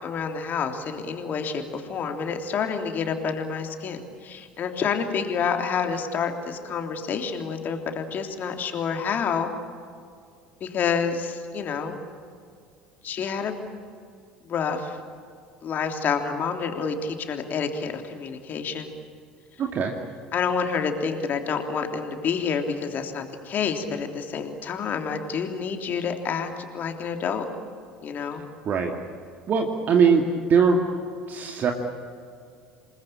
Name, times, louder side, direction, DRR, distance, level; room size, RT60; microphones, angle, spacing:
voice 1, 0.0-9.5 10.6-12.0 13.0-13.6 14.4-15.0 15.6-18.9 20.3-26.5 26.7-27.4 28.0-28.4, left 6 dB, 40° left, 5 dB, 3.3 m, -28 dB
voice 2, 19.6-19.9 28.6-28.9 29.5-30.2 30.5-30.8 31.3-31.7, right 6 dB, 40° right, 2 dB, 2.5 m, -20 dB
28.0 x 20.5 x 8.9 m, 2.2 s
figure-of-eight pair, 65°, 4 cm